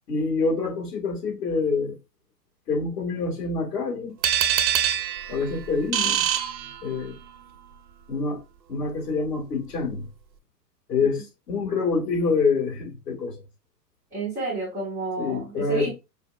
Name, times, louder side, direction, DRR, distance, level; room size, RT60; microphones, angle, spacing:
voice 1, 0.1-2.0 2.7-4.1 5.3-6.2 6.8-7.2 8.1-8.4 8.7-10.1 10.9-13.3 15.2-15.9, left 4 dB, 70° left, 2.1 m, -26 dB
sound 1, 4.2-7.3, right 9 dB, 90° right, 0.6 m, -25 dB
voice 2, 14.1-15.9, right 3 dB, 5° right, 0.3 m, -30 dB
5.2 x 2.3 x 2.5 m
hypercardioid pair, 120°, 50 cm